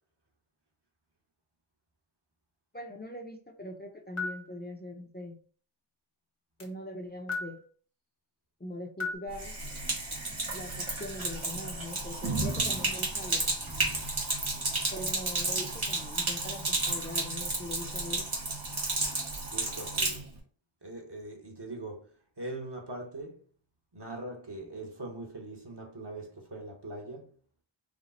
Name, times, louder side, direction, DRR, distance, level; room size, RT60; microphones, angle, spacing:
voice 1, 2.7-5.4 6.6-7.6 8.6-9.6 10.5-13.5 14.9-18.3, left 1 dB, 20° left, 0.8 m, -42 dB
sound 1, 4.2-4.5 6.6-6.7 7.3-7.6 9.0-9.1, left 4 dB, 85° left, 1.3 m, -33 dB
Sink (filling or washing), 9.3-20.2, right 2 dB, 70° right, 1.7 m, -32 dB
voice 2, 19.5-20.3 20.8-23.4 23.9-27.4, right 2 dB, 55° right, 1.4 m, -42 dB
5.0 x 2.3 x 4.1 m
wide cardioid pair, 40°, 49 cm